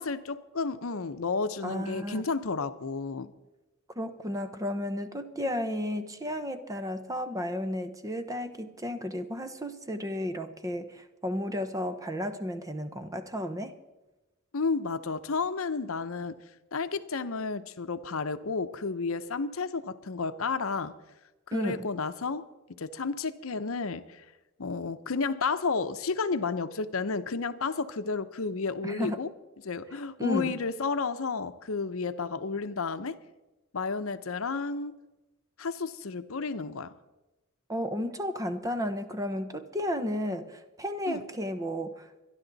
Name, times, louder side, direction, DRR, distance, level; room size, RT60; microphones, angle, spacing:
voice 1, 0.0-3.3 14.5-16.4 16.7-20.9 21.5-22.4 22.8-24.2 24.6-29.3 29.6-33.2 33.7-34.9 35.6-36.9 41.1-41.2, left 4 dB, 70° left, 11 dB, 0.8 m, -32 dB
voice 2, 1.6-2.2 4.0-13.7 21.5-21.9 28.8-29.2 30.2-30.5 37.7-42.1, left 1 dB, 15° right, 10 dB, 0.9 m, -33 dB
25.5 x 11.0 x 4.0 m, 1.0 s
head